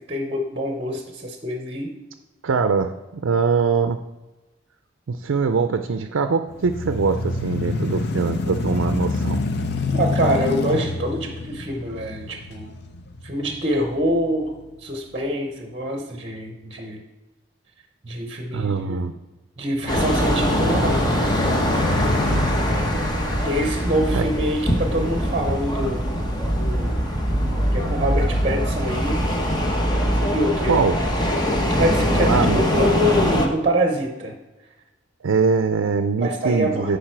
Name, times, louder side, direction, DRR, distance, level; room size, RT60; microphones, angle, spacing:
voice 1, 0.0-1.9 9.9-12.7 13.2-14.5 14.8-17.0 18.0-19.0 19.6-21.5 21.9-22.2 23.4-26.1 26.6-27.0 27.7-29.2 30.2-30.8 31.4-34.3 36.2-36.9, equal, 30° right, 3 dB, 0.9 m, -25 dB
voice 2, 2.4-4.0 5.1-9.4 18.5-19.1 24.1-24.3 30.7-30.9 32.3-32.6 35.2-37.0, right 5 dB, 85° right, 8 dB, 0.5 m, -22 dB
sound 1, 6.5-14.6 15.1-15.2 19.7-24.2, left 3 dB, 55° left, 0.6 m, -27 dB
sound 2, 19.9-33.5, equal, 20° left, 0.9 m, -22 dB
8.8 x 5.2 x 4.5 m, 1.1 s
head